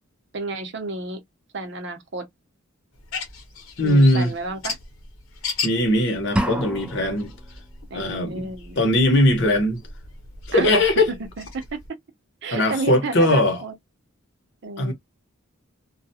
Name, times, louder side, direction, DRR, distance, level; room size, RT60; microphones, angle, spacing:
voice 1, 0.3-1.2 1.5-2.3 3.8-4.8 7.9-8.8 10.5-10.7 11.1-11.8 12.4-13.7 14.6-14.9, right 3 dB, 55° right, 0.7 m, -31 dB
sound 1, 2.9-11.9, left 5 dB, 85° left, 1.0 m, -37 dB
voice 2, 3.8-4.3 5.6-7.3 7.9-8.5 8.8-9.8 10.5-11.1 12.5-13.6 14.8-14.9, left 1 dB, 55° left, 1.0 m, -19 dB
sound 2, 6.4-7.3, equal, 5° right, 0.3 m, -26 dB
2.4 x 2.2 x 2.7 m
head